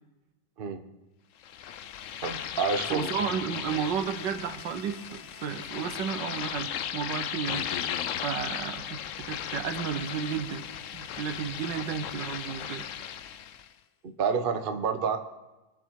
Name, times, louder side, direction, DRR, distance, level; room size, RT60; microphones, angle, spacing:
sound 1, 1.4-13.7, left 9 dB, 90° left, 0.6 m, -36 dB
voice 1, 2.2-3.3 14.0-15.2, right 5 dB, 40° right, 6 dB, 0.8 m, -29 dB
voice 2, 2.9-7.7 8.2-10.6 10.9-12.9, right 7 dB, 70° right, 8 dB, 1.6 m, -33 dB
22.5 x 7.6 x 4.7 m, 1.1 s
omnidirectional pair, 2.1 m